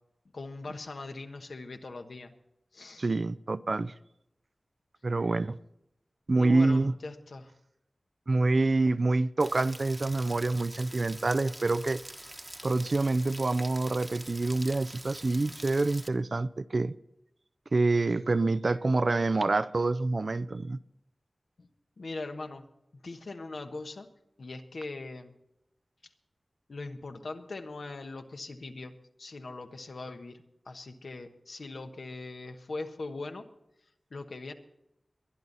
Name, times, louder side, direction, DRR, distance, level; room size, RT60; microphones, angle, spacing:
voice 1, 0.3-2.3 2.7-3.1 6.3-7.5 21.6-21.7 22.0-22.6 23.0-24.1 24.4-25.3 26.7-28.9 29.2-33.4 34.1-34.5, left 3 dB, 80° left, 1.4 m, -40 dB
voice 2, 3.0-3.9 5.0-5.6 6.3-6.9 8.3-12.0 12.6-16.9 17.7-20.8, right 3 dB, 55° right, 0.5 m, -27 dB
Rain, 9.4-16.1, right 1 dB, 20° right, 1.1 m, -45 dB
22.5 x 10.5 x 4.1 m
wide cardioid pair, 70°, 0 cm